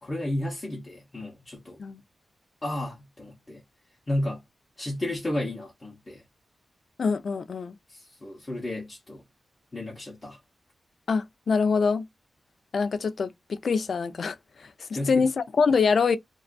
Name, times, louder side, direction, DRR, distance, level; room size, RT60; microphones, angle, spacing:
voice 1, 0.0-1.8 2.6-3.6 4.1-4.4 4.8-6.2 7.9-9.2 9.7-10.4 14.9-15.3, left 1 dB, 25° left, 0.7 m, -32 dB
voice 2, 7.0-7.7 11.1-12.1 12.7-16.2, left 5 dB, 60° left, 0.3 m, -25 dB
2.4 x 2.3 x 2.2 m
wide cardioid pair, 125°, 0 cm